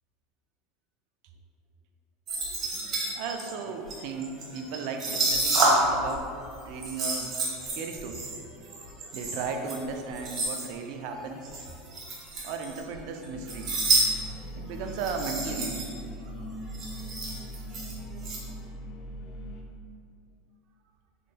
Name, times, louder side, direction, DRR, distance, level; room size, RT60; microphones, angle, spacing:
sound 1, 2.3-6.1 6.4-10.7 11.4-13.0 13.2-14.1 14.3-14.5 14.9-16.0 16.3-16.4 16.5-18.4, right 2 dB, 45° right, 1.2 m, -29 dB
voice 1, 3.2-6.3 6.6-7.4 7.7-8.3 9.1-11.5 12.4-14.1 14.6-15.8 17.0-17.2, right 4 dB, 60° right, 5 dB, 0.4 m, -36 dB
sound 2, 13.3-19.6, equal, 50° left, 0.5 m, -40 dB
3.8 x 3.6 x 2.2 m, 2.3 s
hypercardioid pair, 90°, 0 cm